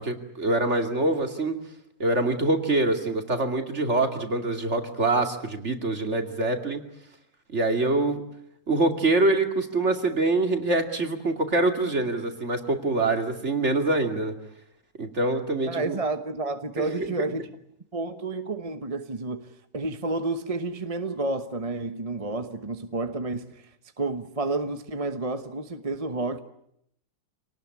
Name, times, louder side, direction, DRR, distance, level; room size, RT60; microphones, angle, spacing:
voice 1, 0.0-1.6 2.0-6.8 7.5-8.2 8.7-14.3 15.0-16.0 16.8-17.0, right 2 dB, 45° right, 2.8 m, -25 dB
voice 2, 15.7-17.5 17.9-19.5 19.7-23.7 24.0-26.4, right 2 dB, 25° right, 1.1 m, -30 dB
26.5 x 19.0 x 9.6 m
omnidirectional pair, 1.7 m